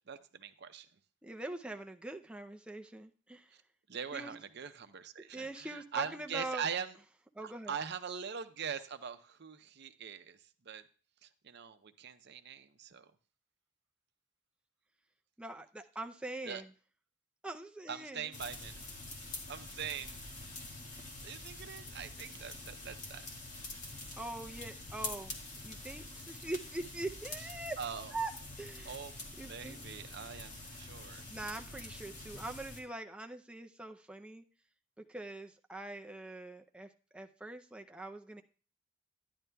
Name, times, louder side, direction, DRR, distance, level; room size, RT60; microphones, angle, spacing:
voice 1, 0.1-0.9 3.5-3.6 3.9-7.0 7.4-10.9 11.2-13.1 16.4-16.6 17.9-18.8 19.5-20.5 21.2-23.3 27.4-27.5 27.8-28.1 28.8-29.2 29.4-31.3, right 7 dB, 60° right, 10 dB, 0.6 m, -42 dB
voice 2, 1.2-3.5 4.1-4.3 5.3-6.6 7.4-7.7 15.4-16.7 17.4-18.3 24.2-25.4 25.6-27.8 28.1-28.3 28.6-29.0 29.4-29.9 31.3-34.4 35.0-38.4, right 2 dB, 5° right, 4 dB, 0.4 m, -43 dB
sound 1, 18.3-32.8, left 2 dB, 40° left, 1.8 m, -46 dB
12.0 x 10.0 x 2.2 m, 0.38 s
head